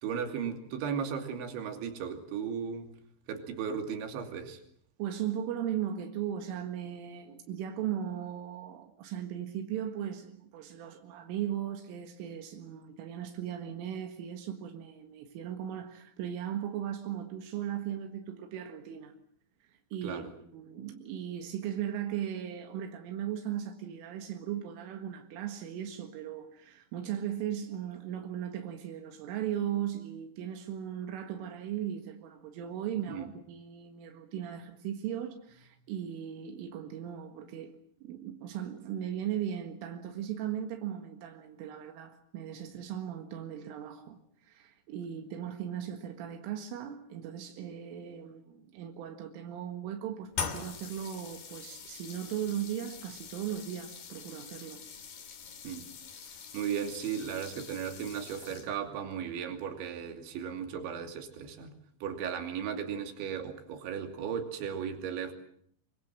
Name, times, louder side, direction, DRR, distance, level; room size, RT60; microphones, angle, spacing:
voice 1, 0.0-2.9 3.3-4.6 20.0-20.3 33.1-33.3 55.6-55.9 56.5-61.7 62.0-65.3, right 7 dB, 70° right, 5.0 m, -36 dB
voice 2, 5.0-19.2 19.9-20.2 20.5-37.7 38.0-54.8, right 10 dB, 90° right, 4.3 m, -37 dB
sound 1, 50.3-58.9, left 7 dB, 50° left, 3.8 m, -43 dB
25.0 x 25.0 x 7.7 m
omnidirectional pair, 5.6 m